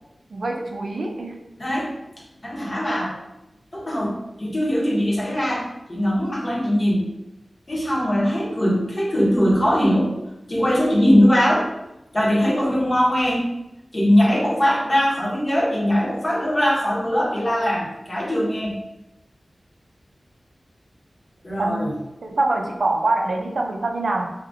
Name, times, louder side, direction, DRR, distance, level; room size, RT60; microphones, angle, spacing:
voice 1, 0.3-1.4 21.6-21.9 22.2-24.2, right 2 dB, 75° right, 2 dB, 0.4 m, -24 dB
voice 2, 1.6-1.9 2.4-3.2 3.7-7.1 7.7-10.2 10.5-11.7 12.1-13.5 13.9-18.8 21.4-21.9, equal, 35° left, -5 dB, 0.8 m, -21 dB
2.7 x 2.4 x 2.5 m, 0.90 s
wide cardioid pair, 90°, 0 cm